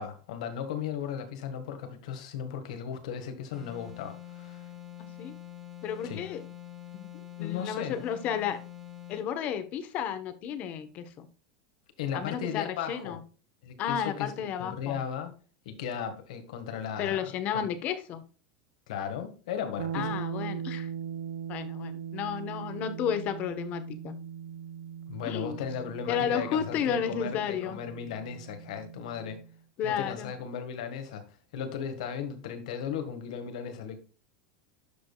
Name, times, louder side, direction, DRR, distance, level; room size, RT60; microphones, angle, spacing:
voice 1, 0.0-4.7 6.0-6.2 7.1-8.0 12.0-13.2 13.6-15.3 15.7-17.2 17.5-17.7 18.9-20.2 25.1-29.4 29.8-31.2 31.5-34.0, left 8 dB, 80° left, 1.7 m, -36 dB
sound 1, 3.5-9.3, left 11 dB, 15° right, 2.3 m, -45 dB
voice 2, 5.8-6.4 6.9-7.1 7.4-8.6 9.1-11.3 12.1-13.2 13.8-15.0 17.0-18.2 19.9-20.9 21.5-24.2 25.2-25.7 26.1-27.8 29.8-30.3, left 8 dB, 40° left, 1.2 m, -32 dB
sound 2, 19.8-29.6, right 8 dB, 85° right, 0.5 m, -40 dB
12.0 x 5.1 x 2.4 m
supercardioid pair, 140°, 4 cm